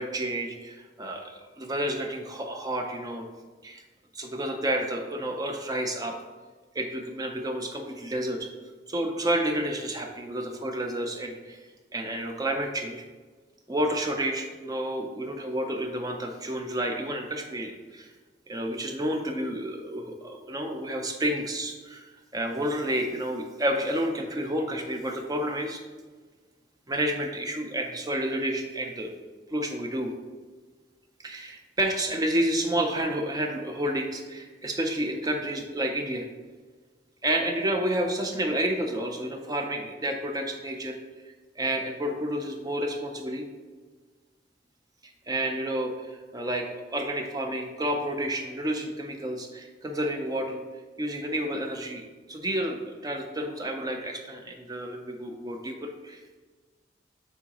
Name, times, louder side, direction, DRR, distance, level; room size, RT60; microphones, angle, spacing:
voice 1, 0.0-3.3 3.6-3.8 4.1-6.2 6.7-8.5 8.9-11.6 11.9-13.0 13.7-18.1 18.5-25.8 26.9-29.1 29.5-30.1 31.2-36.3 37.2-41.0 41.6-43.5 45.3-50.6 51.0-56.4, right 1 dB, 20° right, 3 dB, 0.4 m, -30 dB
8.6 x 3.8 x 2.9 m, 1.4 s
head